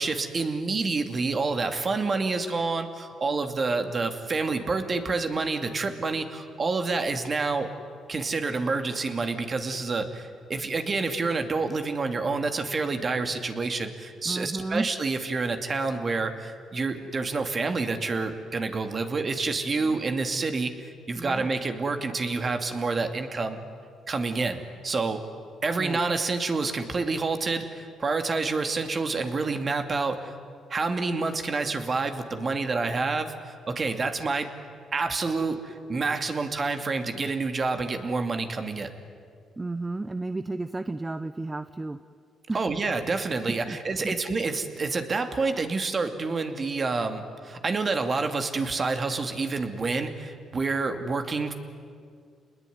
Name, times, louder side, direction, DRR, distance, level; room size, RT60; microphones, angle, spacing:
voice 1, 0.0-7.7 8.1-20.7 21.1-23.6 24.1-25.2 25.6-30.3 30.7-34.5 34.9-38.9 42.5-51.5, right 3 dB, 35° right, 7 dB, 2.5 m, -28 dB
voice 2, 14.2-14.9 19.8-19.9 21.2-21.5 25.8-26.0 39.6-42.0 42.5-42.6 43.5-43.8 44.0-44.2, right 2 dB, 20° right, 12 dB, 0.7 m, -32 dB
29.0 x 20.5 x 9.5 m, 2.2 s
cardioid pair, 90°, 0 cm